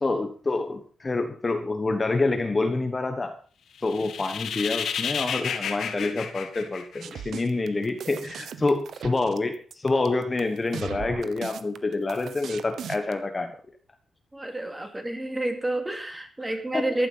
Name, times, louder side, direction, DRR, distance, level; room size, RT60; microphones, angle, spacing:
voice 1, 0.0-3.4 3.8-13.5 16.7-16.8, left 3 dB, 20° left, 6 dB, 1.3 m, -27 dB
sound 1, 3.8-7.4, left 7 dB, 85° left, 2.3 m, -31 dB
sound 2, 7.0-13.1, right 8 dB, 85° right, 1.1 m, -38 dB
voice 2, 14.3-17.1, right 1 dB, 10° right, 5 dB, 2.7 m, -29 dB
15.0 x 12.0 x 5.6 m, 0.43 s
wide cardioid pair, 165°, 0 cm